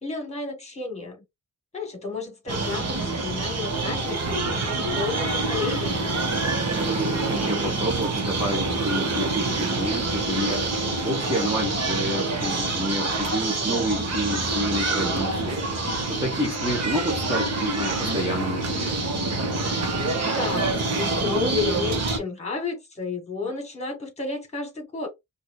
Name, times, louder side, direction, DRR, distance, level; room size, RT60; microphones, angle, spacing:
voice 1, 0.0-1.2 1.7-6.1 20.2-25.1, left 4 dB, 20° left, 1.6 m, -32 dB
sound 1, 2.5-22.2, right 3 dB, 50° right, 1.2 m, -26 dB
voice 2, 6.7-15.6 16.1-19.0, equal, 15° right, 1.3 m, -29 dB
4.7 x 2.6 x 2.5 m
wide cardioid pair, 125°, 32 cm